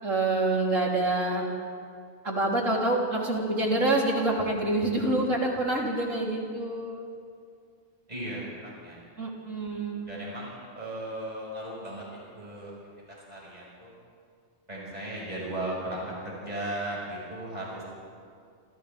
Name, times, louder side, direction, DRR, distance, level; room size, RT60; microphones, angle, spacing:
voice 1, 0.0-1.5 2.2-7.1 9.2-10.1, right 2 dB, 85° right, -3 dB, 3.9 m, -27 dB
voice 2, 8.1-9.0 10.1-12.7 13.1-13.9 14.7-17.8, right 1 dB, 30° right, -5 dB, 6.0 m, -36 dB
28.5 x 27.5 x 3.5 m, 2.2 s
omnidirectional pair, 1.3 m